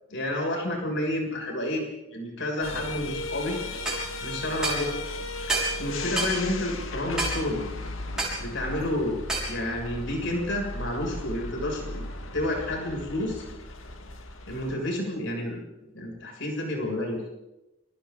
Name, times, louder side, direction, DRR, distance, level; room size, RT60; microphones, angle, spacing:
voice 1, 0.1-1.9 2.1-3.6 4.2-4.9 5.8-7.6 8.4-9.2 9.5-12.0 12.3-13.4 14.5-15.6 15.9-17.2, left 1 dB, 70° left, 0 dB, 7.1 m, -30 dB
sound 1, 2.6-14.8, left 2 dB, 90° left, 2.0 m, -36 dB
small pipe bang, 3.9-4.0 4.6-4.8 5.5-5.8 6.2-6.4 7.2-7.4 8.2-8.4 9.3-9.5, right 2 dB, 5° right, 6.9 m, -27 dB
29.5 x 25.5 x 4.0 m, 0.95 s
head